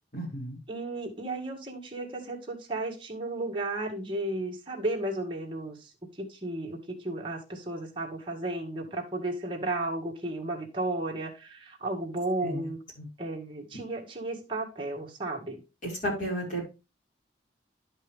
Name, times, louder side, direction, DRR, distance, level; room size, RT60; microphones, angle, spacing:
voice 1, 0.1-0.6 12.4-12.7 13.0-13.1 15.8-16.7, right 1 dB, 45° left, -4 dB, 5.5 m, -33 dB
voice 2, 0.7-5.9 6.2-12.8 13.2-15.6, right 2 dB, 30° right, -1 dB, 1.9 m, -34 dB
11.0 x 5.5 x 3.5 m, 0.28 s
head